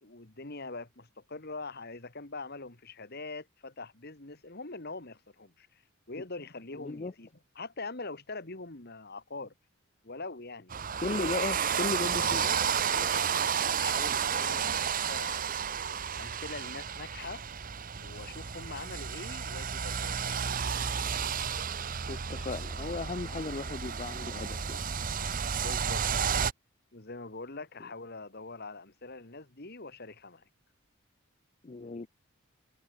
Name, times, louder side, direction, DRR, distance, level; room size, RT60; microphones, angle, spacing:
voice 1, 0.0-5.8 6.1-7.3 7.6-9.5 10.0-10.7 12.2-15.7 16.2-17.4 18.0-20.6 25.6-26.4 26.9-30.5, left 3 dB, 45° left, 2.0 m, -43 dB
voice 2, 6.8-7.1 11.0-12.4 22.1-24.9 31.6-32.1, left 3 dB, 30° left, 0.5 m, -36 dB
sound 1, 10.7-26.5, right 7 dB, 40° right, 0.8 m, -32 dB
head